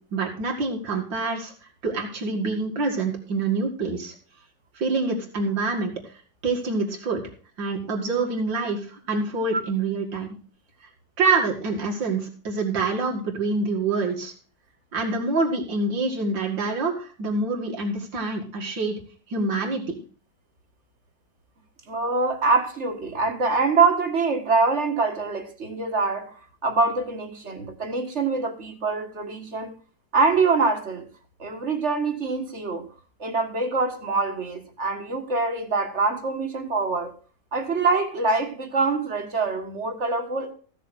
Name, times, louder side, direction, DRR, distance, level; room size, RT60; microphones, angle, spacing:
voice 1, 0.1-1.5 1.8-4.1 4.8-5.9 6.4-7.2 7.6-10.4 11.2-14.3 14.9-19.0 19.3-20.0, right 3 dB, 90° right, 2.9 m, -26 dB
voice 2, 21.9-26.4 26.6-29.7 30.1-31.1 31.4-32.9 33.2-37.1 37.5-40.5, right 4 dB, 40° right, 1.8 m, -24 dB
15.5 x 6.6 x 6.2 m
omnidirectional pair, 2.0 m